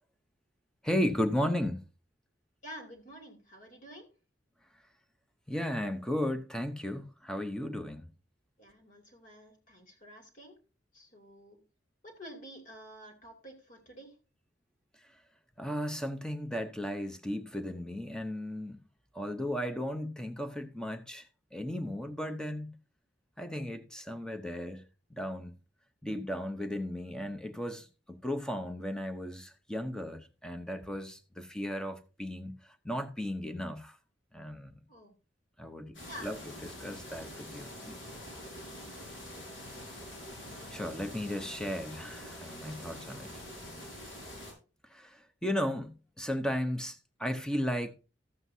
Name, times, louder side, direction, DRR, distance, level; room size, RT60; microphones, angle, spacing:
voice 1, 0.8-1.8 5.5-8.1 15.6-18.8 19.1-22.8 23.4-24.8 25.1-25.5 26.0-32.6 32.8-34.0 34.3-34.8 35.6-36.5 36.8-37.9 40.7-43.3 44.9-47.9, equal, 5° left, 0.8 m, -35 dB
voice 2, 2.6-4.1 8.6-10.6 10.9-11.6 12.0-14.1 34.9-35.2 36.1-36.4 38.4-38.9, equal, 45° left, 2.7 m, -49 dB
sound 1, 35.9-44.5, left 1 dB, 80° left, 5.5 m, -45 dB
13.5 x 7.8 x 2.8 m
head